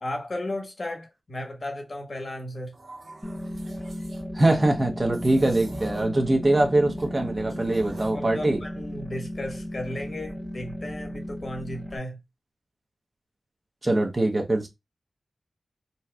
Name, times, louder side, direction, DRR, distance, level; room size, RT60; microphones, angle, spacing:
voice 1, 0.0-2.7 8.0-12.2, left 1 dB, 55° left, 1.2 m, -35 dB
sound 1, 2.7-4.2 5.1-6.2 6.5-8.2, right 2 dB, 70° right, 1.0 m, -42 dB
sound 2, 3.2-12.0, equal, ahead, 0.4 m, -35 dB
voice 2, 4.3-8.6 13.8-14.7, right 2 dB, 35° right, 0.8 m, -23 dB
4.1 x 2.2 x 2.3 m
wide cardioid pair, 70°, 0 cm